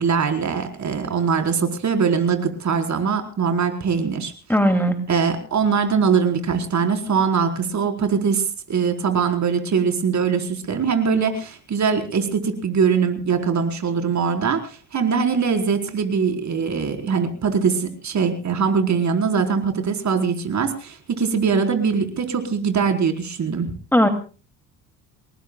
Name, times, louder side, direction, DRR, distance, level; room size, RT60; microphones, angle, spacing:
voice 1, 0.0-4.3 5.1-23.7, right 6 dB, 40° right, 6 dB, 4.5 m, -22 dB
voice 2, 4.5-5.0 23.9-24.1, equal, 5° left, 8 dB, 2.7 m, -17 dB
28.5 x 19.5 x 2.3 m, 0.36 s
hypercardioid pair, 60°, 43 cm